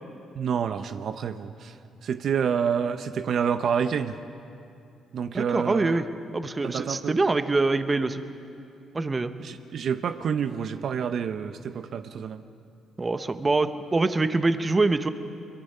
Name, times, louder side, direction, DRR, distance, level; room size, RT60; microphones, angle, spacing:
voice 1, 0.4-1.7 2.0-4.2 5.1-6.0 6.6-7.2 9.4-12.4, right 7 dB, 60° right, 10 dB, 0.6 m, -28 dB
voice 2, 5.3-6.1 6.3-8.2 8.9-9.3 13.0-15.1, right 3 dB, 25° right, 10 dB, 0.9 m, -24 dB
23.0 x 22.5 x 5.6 m, 2.6 s
cardioid pair, 90°, 0 cm